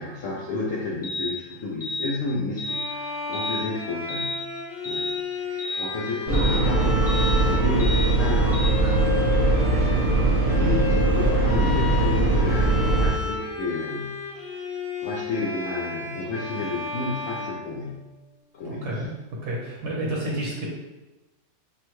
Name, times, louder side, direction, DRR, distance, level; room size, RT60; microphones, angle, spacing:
voice 1, 0.0-4.5 4.8-18.1 18.5-19.0, left 3 dB, 85° left, -3 dB, 0.7 m, -32 dB
sound 1, 1.0-1.3 1.8-2.1 2.6-2.9 3.3-3.6 4.1-4.4 4.8-5.1 5.6-5.9 6.3-6.6 7.1-7.3 7.8-8.1 8.5-8.7, left 1 dB, 40° left, 0.3 m, -31 dB
Bowed string instrument, 2.6-18.4, left 4 dB, 60° left, 1.2 m, -33 dB
sound 2, 6.3-13.1, right 2 dB, 55° right, 0.4 m, -21 dB
voice 2, 18.6-19.1 19.4-20.7, right 1 dB, 75° right, -3 dB, 1.5 m, -30 dB
5.9 x 2.2 x 3.0 m, 1.1 s
omnidirectional pair, 2.0 m